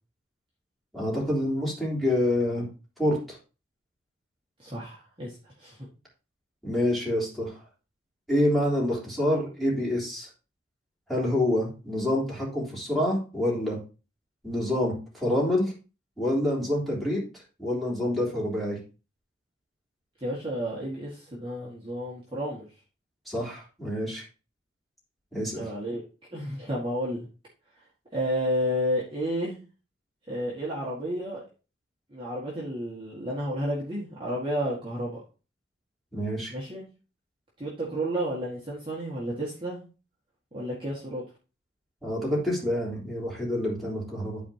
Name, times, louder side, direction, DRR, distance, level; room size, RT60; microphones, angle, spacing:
voice 1, 0.9-2.7 3.0-3.4 6.6-7.6 8.3-10.3 11.1-13.8 14.4-15.7 16.2-17.2 17.6-18.8 23.3-24.2 25.3-25.6 36.1-36.5 42.0-44.4, left 1 dB, ahead, -6 dB, 3.4 m, -27 dB
voice 2, 4.6-5.8 20.2-22.7 25.6-26.0 26.3-27.3 28.1-29.6 30.3-31.4 32.1-35.2 36.5-36.8 37.6-39.8 40.5-41.2, equal, 25° right, -6 dB, 1.9 m, -31 dB
12.5 x 4.3 x 2.9 m, 0.33 s
head